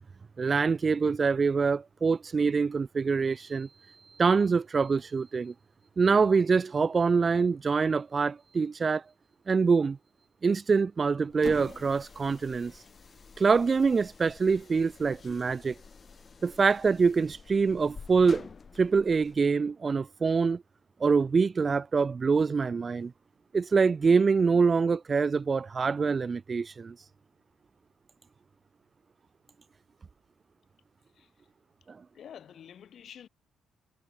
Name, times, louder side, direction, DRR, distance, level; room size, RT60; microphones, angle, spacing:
voice 1, 0.4-3.7 4.2-5.5 6.0-9.0 9.5-10.0 10.4-12.7 13.4-15.8 16.4-18.5 18.8-20.6 21.0-23.1 23.5-27.0 31.9-32.0, right 5 dB, 35° right, 0.3 m, -25 dB
sound 1, 11.3-19.4, left 5 dB, 40° left, 0.6 m, -48 dB
voice 2, 32.1-33.3, left 9 dB, 60° left, 1.4 m, -48 dB
cardioid pair, 90°, 0 cm